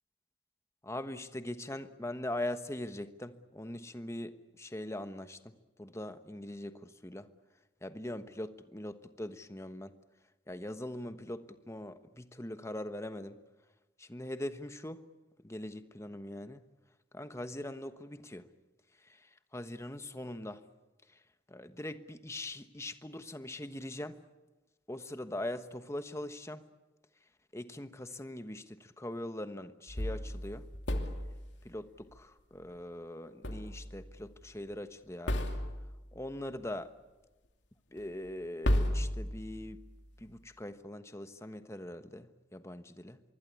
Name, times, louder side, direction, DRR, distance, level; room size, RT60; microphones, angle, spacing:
voice 1, 0.8-7.3 7.8-10.0 10.5-13.4 14.0-15.1 15.4-16.6 17.1-18.5 19.0-20.6 21.5-24.2 24.9-26.7 27.5-30.7 31.6-35.5 36.1-36.9 37.9-39.8 40.2-43.2, left 1 dB, 15° left, 10 dB, 1.2 m, -42 dB
sound 1, 29.9-31.5 33.4-34.1 34.4-34.5 35.3-36.0 38.0-38.1 38.6-39.8, left 1 dB, 80° left, 2.7 m, -33 dB
25.5 x 23.0 x 8.5 m, 1.1 s
head